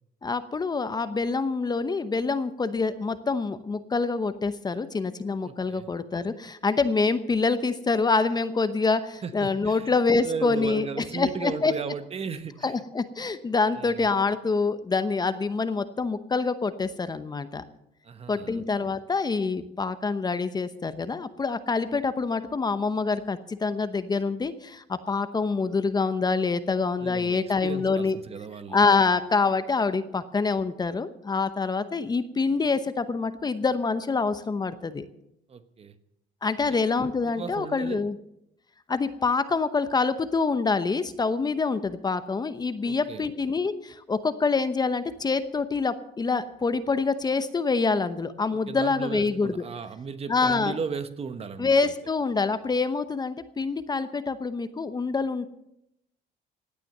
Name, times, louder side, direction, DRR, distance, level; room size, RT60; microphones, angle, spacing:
voice 1, 0.2-10.9 11.1-11.7 12.6-17.6 18.3-28.2 28.7-35.1 36.4-38.2 38.9-49.6 50.3-50.7 51.6-55.4, left 4 dB, 25° left, 12 dB, 0.9 m, -26 dB
voice 2, 5.4-5.9 9.2-9.9 10.2-12.8 13.7-14.1 18.0-18.6 27.0-28.8 35.5-36.0 37.2-38.1 42.8-43.3 48.5-51.9, right 5 dB, 35° right, 11 dB, 1.1 m, -36 dB
17.0 x 9.2 x 6.6 m, 0.81 s
cardioid pair, 110°, 17 cm